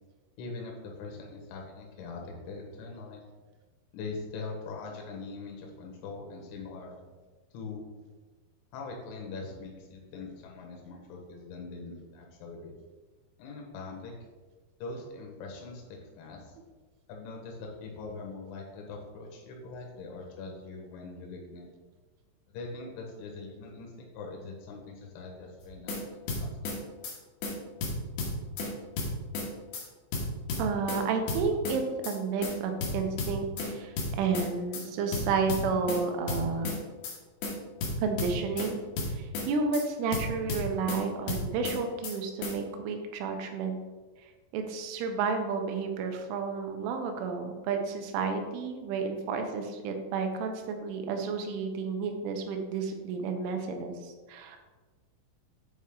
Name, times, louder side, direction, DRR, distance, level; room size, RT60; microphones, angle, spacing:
voice 1, 0.4-3.2 3.9-7.0 7.5-7.9 8.7-12.7 13.4-14.1 14.8-16.5 17.1-21.7 22.5-26.5, left 3 dB, 85° left, 0 dB, 3.6 m, -42 dB
sound 1, 25.6-26.0 26.3-26.8 27.0-27.2 27.4-27.5 27.8-28.7 29.0-29.5 29.7-29.8 30.1-31.0 31.3-31.8 32.0-32.2 32.4-32.5 32.8-33.7 34.0-34.5 34.7-34.8 35.1-36.0 36.3-36.8 37.0-37.2 37.4-37.5 37.8-38.7 39.0-39.5 39.7-39.8 40.1-41.0 41.3-41.8 42.0-42.2 42.4-42.5, left 3 dB, 65° left, 2.8 m, -32 dB
voice 2, 30.6-36.7 38.0-38.8 39.1-43.8 44.5-54.6, right 5 dB, 85° right, 5 dB, 3.2 m, -31 dB
9.1 x 4.3 x 3.6 m, 1.3 s
omnidirectional pair, 5.4 m